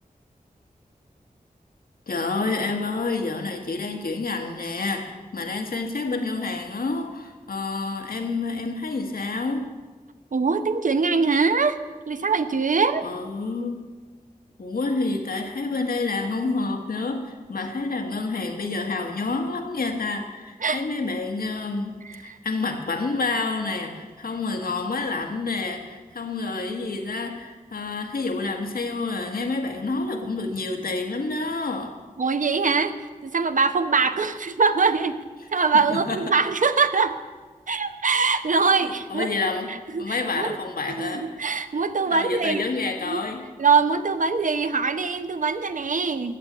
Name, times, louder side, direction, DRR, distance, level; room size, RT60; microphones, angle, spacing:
voice 1, 2.1-9.7 13.0-13.9 14.6-32.0 35.9-36.2 38.8-41.5 42.1-43.5, left 3 dB, 80° left, 4 dB, 1.6 m, -28 dB
voice 2, 10.3-11.8 12.1-13.1 20.6-20.8 22.1-22.4 32.2-32.9 33.2-35.2 35.5-37.2 37.7-40.6 41.0-42.6 43.0-43.2 43.6-46.4, right 4 dB, 60° right, 10 dB, 0.8 m, -23 dB
12.5 x 8.2 x 8.7 m, 1.4 s
wide cardioid pair, 85°, 15 cm